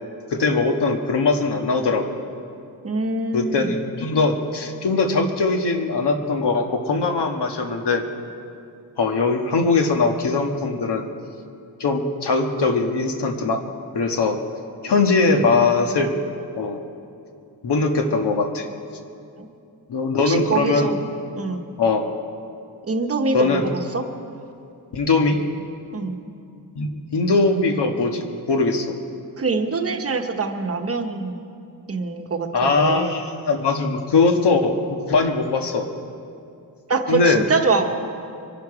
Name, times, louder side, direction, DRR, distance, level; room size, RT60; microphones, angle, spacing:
voice 1, 0.3-2.0 3.3-8.0 9.0-11.1 11.8-13.6 13.9-14.4 14.8-16.1 16.6-16.8 17.6-18.6 19.9-20.9 21.8-22.1 23.3-23.6 24.9-25.4 26.8-28.9 32.5-35.9 37.1-37.4, left 3 dB, 80° left, 4 dB, 1.4 m, -21 dB
voice 2, 2.8-3.7 19.4-19.5 20.2-21.0 21.4-21.6 22.9-24.0 25.9-26.2 29.4-31.4 31.9-33.2 36.9-37.9, right 4 dB, 35° right, 5 dB, 0.9 m, -24 dB
24.5 x 11.5 x 4.8 m, 2.5 s
wide cardioid pair, 180°, 40 cm